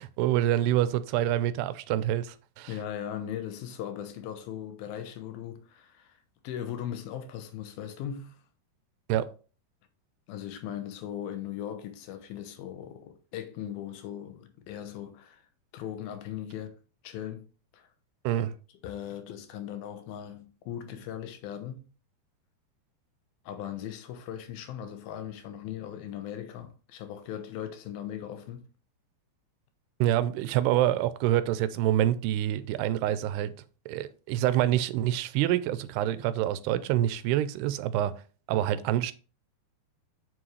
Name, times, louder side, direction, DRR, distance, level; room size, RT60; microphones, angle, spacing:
voice 1, 0.0-2.7 9.1-9.3 18.2-18.5 30.0-33.5 33.9-38.1 38.5-39.1, right 12 dB, 90° right, 2.6 m, -26 dB
voice 2, 2.7-6.2 6.4-8.4 10.3-15.4 15.7-16.8 17.0-17.4 17.7-17.9 18.8-21.9 23.5-28.7, left 10 dB, 75° left, 2.6 m, -38 dB
7.3 x 6.2 x 3.2 m
omnidirectional pair, 4.6 m